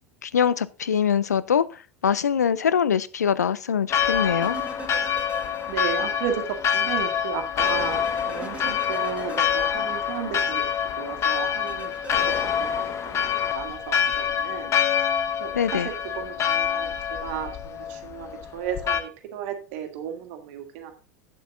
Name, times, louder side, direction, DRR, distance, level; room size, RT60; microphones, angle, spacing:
voice 1, 0.2-4.6 15.5-15.9, left 8 dB, 80° left, 0.4 m, -23 dB
Church bell, 3.9-19.0, left 8 dB, 35° left, 1.0 m, -26 dB
sound 1, 4.4-6.1 6.4-6.5 7.7-10.5 11.7-12.4, right 3 dB, 15° right, 1.2 m, -41 dB
voice 2, 5.7-10.7 11.0-12.3 12.6-14.7 15.4-20.9, right 9 dB, 55° right, 1.6 m, -34 dB
7.8 x 7.6 x 3.7 m
figure-of-eight pair, 80°, 9 cm